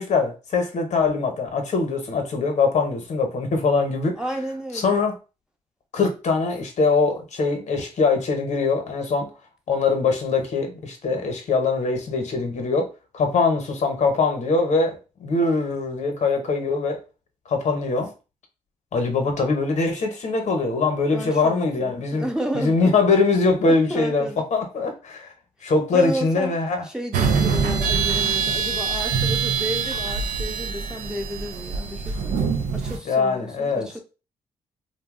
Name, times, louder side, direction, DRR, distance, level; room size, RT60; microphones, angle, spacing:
voice 1, 0.0-4.2 4.7-5.2 5.9-9.3 9.7-17.0 17.5-18.1 18.9-22.3 22.5-25.3 25.6-26.8 33.0-33.9, left 4 dB, 60° left, 0.8 m, -22 dB
voice 2, 4.2-5.0 21.1-22.9 23.7-24.4 25.9-26.6 26.8-34.0, right 1 dB, 5° right, 0.7 m, -32 dB
sound 1, 27.1-33.0, right 5 dB, 85° right, 0.5 m, -24 dB
2.6 x 2.0 x 3.5 m
supercardioid pair, 65°, 13 cm